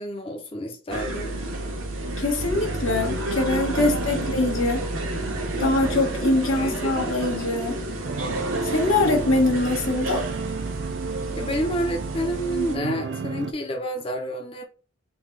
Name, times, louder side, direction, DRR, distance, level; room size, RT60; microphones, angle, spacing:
voice 1, 0.0-1.4 6.5-7.1 11.4-14.7, equal, 25° left, 0.6 m, -30 dB
concert hall lauphing and cauphing, 0.9-12.8, right 1 dB, 85° right, 1.1 m, -30 dB
voice 2, 2.2-4.9 5.6-7.8 8.6-10.3, left 2 dB, 90° left, 1.4 m, -23 dB
sound 1, 8.0-13.5, right 5 dB, 60° right, 0.4 m, -32 dB
3.8 x 2.3 x 4.6 m
head